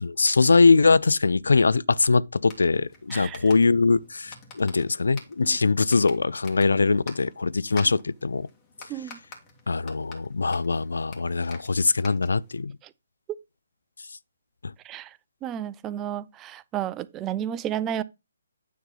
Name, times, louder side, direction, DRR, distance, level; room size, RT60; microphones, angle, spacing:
voice 1, 0.0-8.5 9.7-12.7 14.6-14.7, left 4 dB, 80° left, 0.4 m, -22 dB
sound 1, 2.4-12.6, left 4 dB, 20° left, 2.1 m, -48 dB
voice 2, 14.8-15.2 15.4-18.0, right 10 dB, 20° right, 0.4 m, -32 dB
9.3 x 3.8 x 5.7 m
hypercardioid pair, 145°, 0 cm